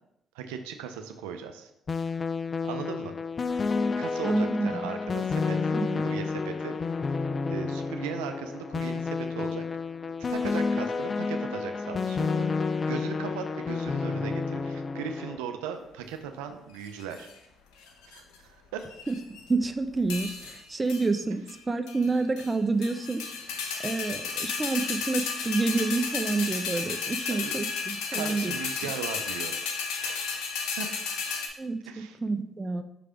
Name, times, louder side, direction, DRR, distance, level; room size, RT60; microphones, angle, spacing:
voice 1, 0.3-1.7 2.6-3.1 4.0-5.7 6.0-6.7 7.5-9.7 10.2-12.3 12.9-17.3 18.1-18.8 25.4-25.5 27.3-27.5 28.1-29.5 30.0-30.9 31.9-32.2, right 7 dB, 90° right, 6 dB, 0.5 m, -38 dB
sound 1, 1.9-15.4, left 4 dB, 45° left, 0.3 m, -30 dB
voice 2, 4.3-4.7 5.7-6.1 19.1-19.2 19.5-23.2 23.8-28.5 31.6-32.8, right 3 dB, 25° right, 7 dB, 0.6 m, -28 dB
sound 2, 16.8-17.3 17.9-18.4 18.8-19.5 20.1-20.6 20.9-21.1 21.5-21.6 21.9-22.5 22.8-31.5, left 5 dB, 80° left, 0.8 m, -33 dB
5.9 x 3.3 x 5.0 m, 0.81 s
hypercardioid pair, 55°, 0 cm